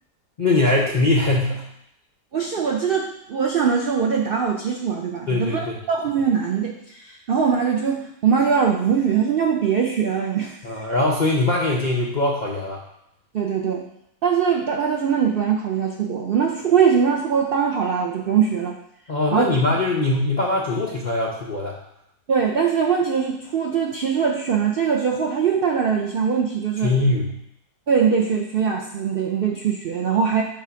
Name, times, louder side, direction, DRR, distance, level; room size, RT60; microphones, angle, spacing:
voice 1, 0.4-1.6 5.3-5.8 10.6-12.8 19.1-21.8 26.8-27.3, left 2 dB, 55° left, -3 dB, 0.5 m, -21 dB
voice 2, 2.3-10.8 13.3-13.8 14.2-18.7 19.3-19.6 22.3-26.9 27.9-30.4, right 7 dB, 80° right, 0 dB, 0.5 m, -22 dB
7.5 x 2.5 x 5.6 m, 0.78 s
omnidirectional pair, 1.8 m